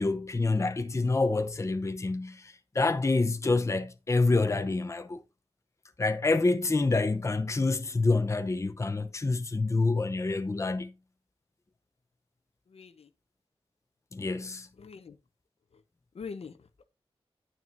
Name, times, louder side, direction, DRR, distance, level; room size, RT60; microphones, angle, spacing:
voice 1, 0.0-5.2 6.0-10.9 14.1-14.7, left 3 dB, 30° left, 0.7 m, -27 dB
voice 2, 12.7-13.1 14.8-15.2 15.7-15.8 16.1-16.8, left 5 dB, 75° left, 0.8 m, -44 dB
9.4 x 9.0 x 2.6 m
wide cardioid pair, 95°, 10 cm